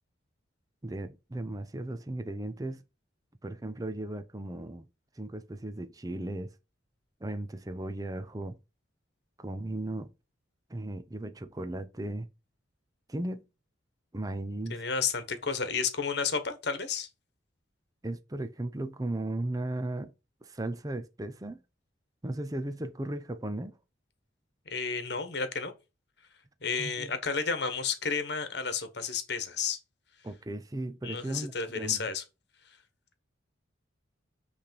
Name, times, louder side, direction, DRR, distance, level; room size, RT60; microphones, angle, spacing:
voice 1, 0.8-2.8 3.4-4.8 5.2-6.5 7.2-8.6 9.4-10.1 10.7-12.3 13.1-13.4 14.1-14.8 18.0-20.1 20.4-21.6 22.2-23.8 26.8-27.2 30.2-32.1, right 1 dB, 20° right, 0.6 m, -36 dB
voice 2, 14.7-17.1 24.7-25.7 26.6-29.8 31.0-32.2, left 5 dB, 55° left, 1.3 m, -31 dB
8.3 x 3.4 x 5.2 m
head